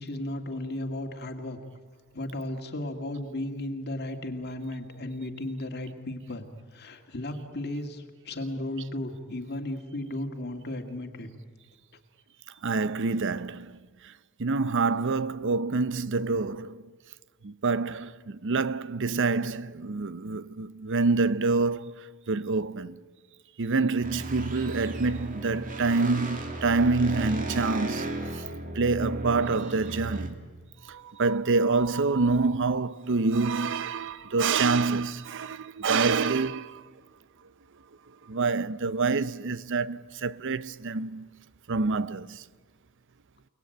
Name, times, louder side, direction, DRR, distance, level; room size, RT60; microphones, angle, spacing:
voice 1, 0.0-1.6 2.1-11.3, left 1 dB, 50° left, 2.0 m, -35 dB
voice 2, 12.6-14.1 14.4-16.9 17.4-23.0 23.6-28.4 28.7-30.4 30.8-36.9 38.2-41.3 41.7-42.4, right 4 dB, 55° right, 0.7 m, -27 dB
sound 1, 24.0-30.3, right 1 dB, 35° right, 2.5 m, -35 dB
29.5 x 19.0 x 9.1 m
head